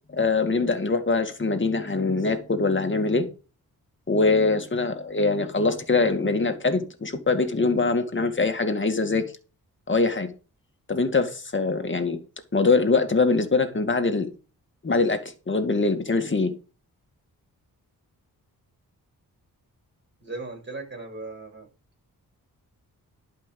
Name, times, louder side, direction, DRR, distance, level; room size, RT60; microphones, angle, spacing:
voice 1, 0.1-3.3 4.1-9.2 9.9-10.3 10.9-12.2 12.5-14.3 14.8-16.5, left 3 dB, 30° left, 2.2 m, -23 dB
voice 2, 20.2-21.7, right 3 dB, 30° right, 6.5 m, -37 dB
11.5 x 5.7 x 7.0 m
cardioid pair, 90°, 37 cm